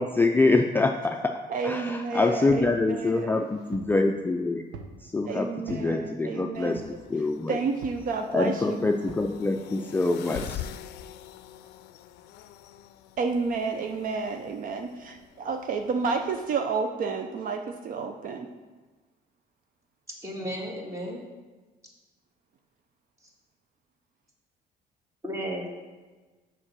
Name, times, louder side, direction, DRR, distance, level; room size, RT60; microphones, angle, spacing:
voice 1, 0.0-1.3 1.6-4.6 5.0-6.8 7.1-7.6 8.3-10.7, left 3 dB, 10° left, 3 dB, 0.4 m, -25 dB
voice 2, 1.5-3.5 5.2-6.8 7.5-8.9 13.2-18.5, right 4 dB, 55° right, 5 dB, 0.6 m, -30 dB
sound 1, 2.5-2.7 3.3-4.0 4.7-5.0 5.6-5.9 6.7-7.1 7.8-8.1 9.1-9.3 10.4-10.6, right 5 dB, 85° right, 0.8 m, -43 dB
sound 2, 6.5-16.5, left 11 dB, 80° left, 0.4 m, -45 dB
voice 3, 20.2-21.2 25.2-25.7, equal, 20° right, -1 dB, 1.7 m, -33 dB
6.3 x 4.7 x 6.1 m, 1.3 s
cardioid pair, 110°, 17 cm